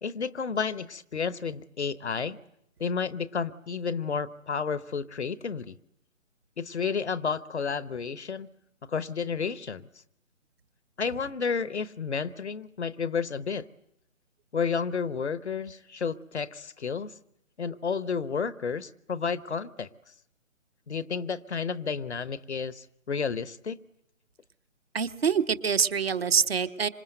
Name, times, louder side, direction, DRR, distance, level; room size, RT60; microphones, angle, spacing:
voice 1, 0.0-2.4 2.8-5.8 6.6-8.5 8.9-9.8 11.0-13.7 14.5-17.1 17.6-19.9 20.9-23.8, left 5 dB, 55° left, 17 dB, 1.0 m, -31 dB
voice 2, 24.9-26.9, right 6 dB, 45° right, 9 dB, 1.3 m, -25 dB
28.5 x 26.0 x 7.9 m, 0.79 s
figure-of-eight pair, 140°, 41 cm